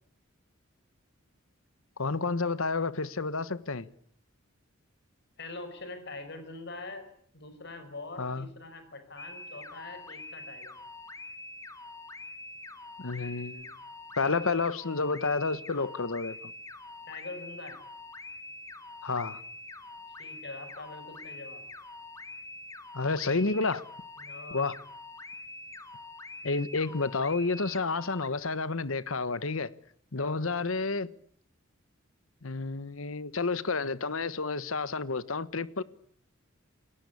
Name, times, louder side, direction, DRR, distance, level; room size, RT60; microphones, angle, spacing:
voice 1, 2.0-3.9 8.2-8.5 13.0-13.7 14.2-16.5 19.0-19.4 22.9-23.8 24.5-24.8 26.4-29.7 30.1-31.1 32.4-35.8, left 3 dB, 75° left, 1.2 m, -30 dB
voice 2, 5.4-7.1 7.3-10.8 17.1-17.8 20.1-21.7 24.2-24.8 30.2-30.5, left 3 dB, 55° left, 5.5 m, -43 dB
sound 1, 9.2-28.3, left 2 dB, 15° left, 2.3 m, -45 dB
29.0 x 18.5 x 8.5 m
head